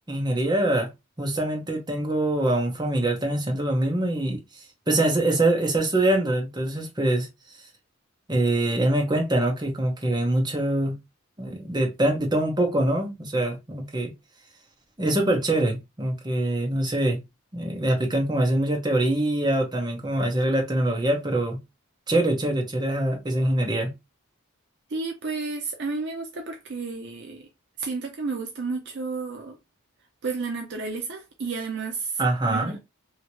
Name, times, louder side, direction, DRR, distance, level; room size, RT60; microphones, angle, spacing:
voice 1, 0.1-0.9 1.2-4.4 4.9-7.3 8.3-11.0 11.4-14.1 15.0-17.2 17.5-21.6 22.1-23.9 32.2-32.7, right 1 dB, 20° right, 0.8 m, -24 dB
voice 2, 24.9-27.5 27.8-29.6 30.2-32.8, right 4 dB, 55° right, 0.5 m, -32 dB
2.9 x 2.8 x 2.8 m
head